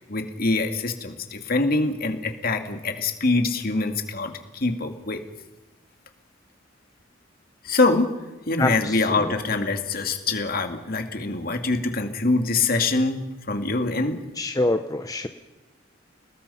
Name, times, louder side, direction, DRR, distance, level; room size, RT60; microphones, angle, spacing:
voice 1, 0.1-5.2 7.6-8.1 8.5-13.2 13.5-14.2, left 3 dB, 50° left, 6 dB, 2.4 m, -24 dB
voice 2, 8.6-9.3 14.4-15.3, left 2 dB, 20° left, 7 dB, 0.8 m, -25 dB
29.5 x 19.5 x 5.7 m, 1.1 s
head